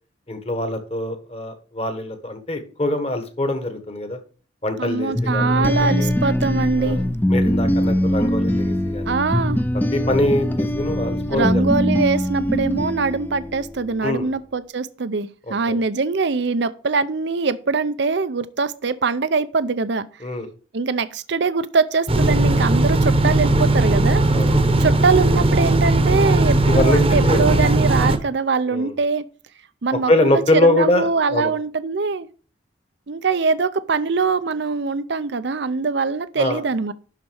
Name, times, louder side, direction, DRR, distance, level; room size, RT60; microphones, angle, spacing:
voice 1, 0.3-4.2 4.6-5.6 6.0-6.1 6.8-7.0 7.3-9.1 9.9-11.7 14.0-14.3 15.5-15.8 20.2-20.5 24.3-24.5 26.7-27.5 28.7-28.9 30.1-31.5 36.4-36.6, left 1 dB, 30° left, 7 dB, 1.5 m, -23 dB
voice 2, 4.8-7.0 9.1-9.6 11.3-20.3 20.7-24.2 24.8-29.2 29.8-32.3 33.1-36.9, right 4 dB, 60° right, 14 dB, 0.6 m, -22 dB
sound 1, 5.1-13.9, equal, 10° left, 0.5 m, -22 dB
sound 2, 22.1-28.2, right 2 dB, 30° right, 1.0 m, -17 dB
11.5 x 4.1 x 6.4 m, 0.39 s
head